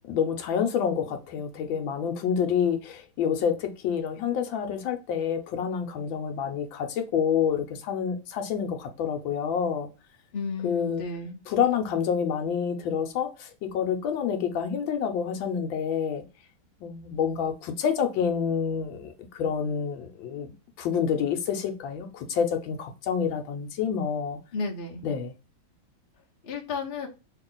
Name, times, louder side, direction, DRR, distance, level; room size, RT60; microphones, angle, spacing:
voice 1, 0.1-9.9 10.6-11.0 11.5-16.2 16.8-20.5 20.8-24.4 25.0-25.3, left 7 dB, 75° left, 1.3 m, -28 dB
voice 2, 10.3-11.4 24.5-25.0 26.4-27.1, left 4 dB, 50° left, 0.6 m, -33 dB
3.0 x 2.8 x 3.7 m
omnidirectional pair, 2.2 m